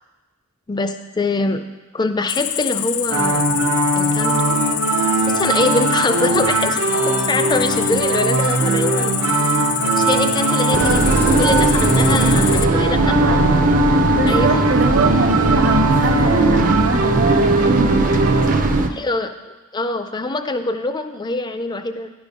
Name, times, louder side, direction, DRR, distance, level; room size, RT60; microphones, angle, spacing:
voice 1, 0.7-1.6 1.9-3.4 4.0-4.6 5.3-6.8 7.2-9.5 9.9-11.0 11.3-13.2 14.3-14.6 19.0-22.1, left 2 dB, 20° left, 9 dB, 0.4 m, -24 dB
Cricket, 2.3-12.6, left 12 dB, 80° left, 0.4 m, -25 dB
sound 1, 3.1-18.5, right 2 dB, 90° right, 0.9 m, -20 dB
sound 2, 10.7-18.9, right 2 dB, 40° right, 0.5 m, -19 dB
voice 2, 13.2-13.6 14.1-18.0 18.5-18.7, right 2 dB, 55° right, 5 dB, 0.9 m, -23 dB
10.5 x 5.0 x 5.2 m, 1.2 s
head